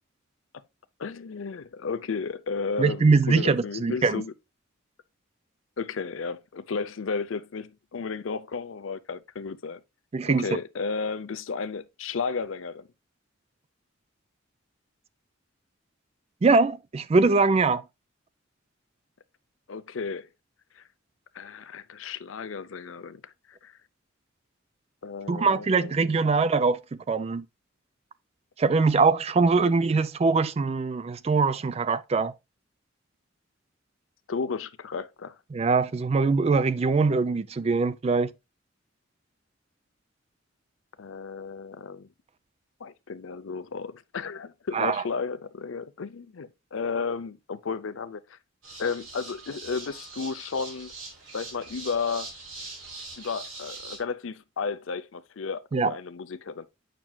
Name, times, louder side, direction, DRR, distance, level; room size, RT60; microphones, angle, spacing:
voice 1, 1.0-4.3 5.8-9.8 10.3-12.9 19.7-20.3 20.8-20.9 21.3-23.7 25.0-26.2 29.6-29.7 34.3-35.4 41.0-42.1 42.8-48.4 48.8-50.9 51.3-52.3 53.2-56.7, left 5 dB, 80° left, 0.6 m, -33 dB
voice 2, 2.8-4.2 10.1-10.5 16.4-17.8 25.3-26.8 27.1-27.4 28.6-32.3 35.5-38.3 44.7-45.0 55.7-55.9, right 4 dB, 30° right, 0.3 m, -22 dB
sound 1, 48.6-54.0, right 3 dB, 85° right, 3.1 m, -42 dB
9.0 x 6.0 x 2.3 m
head